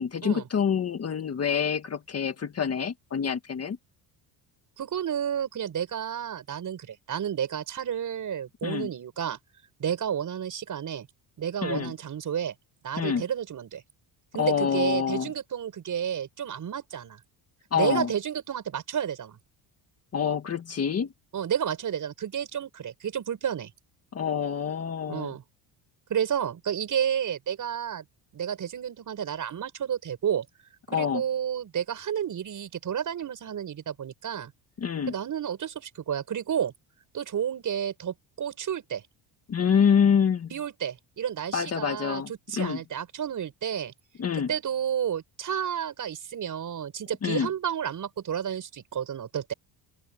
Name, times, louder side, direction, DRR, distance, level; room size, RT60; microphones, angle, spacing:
voice 1, 0.0-3.8 8.6-8.9 11.6-11.9 13.0-13.2 14.4-15.3 17.7-18.1 20.1-21.1 24.1-25.3 30.9-31.2 34.8-35.1 39.5-40.5 41.5-42.3 42.6-42.8 44.2-44.5 47.2-47.5, left 7 dB, 30° left, 1.7 m, -26 dB
voice 2, 4.8-9.4 9.8-11.1 11.4-12.5 12.8-13.8 14.3-17.2 17.7-19.4 21.3-23.7 25.1-25.4 26.1-28.0 28.3-30.4 30.9-34.5 35.1-36.7 37.1-39.0 40.5-43.9 44.5-49.5, right 9 dB, 40° right, 6.3 m, -31 dB
open air
cardioid pair, 155°, 46 cm